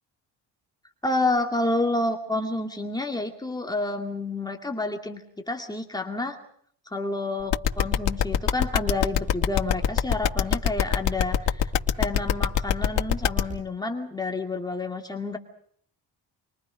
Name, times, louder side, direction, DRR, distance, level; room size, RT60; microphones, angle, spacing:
voice 1, 1.0-6.4 6.9-11.7 12.0-15.4, left 2 dB, 10° left, 3 dB, 2.4 m, -29 dB
sound 1, 7.5-13.4, left 9 dB, 85° left, 3.0 m, -22 dB
29.0 x 24.0 x 5.2 m, 0.63 s
cardioid pair, 170°, 42 cm